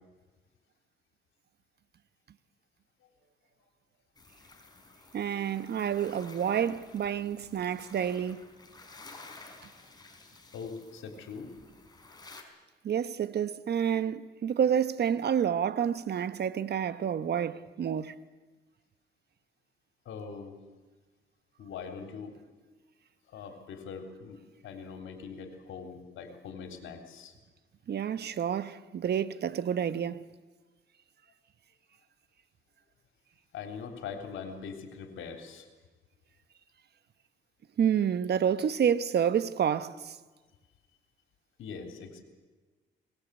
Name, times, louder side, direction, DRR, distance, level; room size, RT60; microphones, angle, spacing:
sound 1, 4.2-12.4, left 3 dB, 20° left, 4.3 m, -53 dB
voice 1, 5.1-8.4 12.8-18.1 27.9-30.3 37.8-40.2, right 8 dB, 55° right, 1.1 m, -29 dB
voice 2, 10.5-11.5 20.1-20.6 21.6-22.4 23.3-24.4 24.6-27.3 33.5-35.7 41.6-42.2, left 5 dB, 80° left, 3.6 m, -42 dB
23.0 x 20.0 x 8.3 m
cardioid pair, 90°, 20 cm